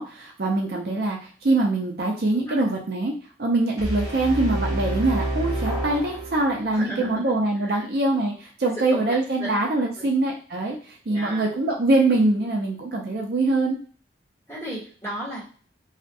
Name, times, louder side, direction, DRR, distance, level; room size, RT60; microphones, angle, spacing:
voice 1, 0.0-3.1 3.4-10.8 11.1-13.8, right 2 dB, 55° right, 0 dB, 0.5 m, -23 dB
voice 2, 2.5-2.8 6.7-7.4 7.6-7.8 8.8-9.5 10.0-10.1 11.1-11.4 14.5-15.4, right 1 dB, 15° left, -8 dB, 1.3 m, -35 dB
sound 1, 3.8-6.8, right 1 dB, 25° right, 0.8 m, -28 dB
sound 2, 5.7-6.2, left 3 dB, 5° right, 1.0 m, -37 dB
2.3 x 2.0 x 2.6 m, 0.43 s
head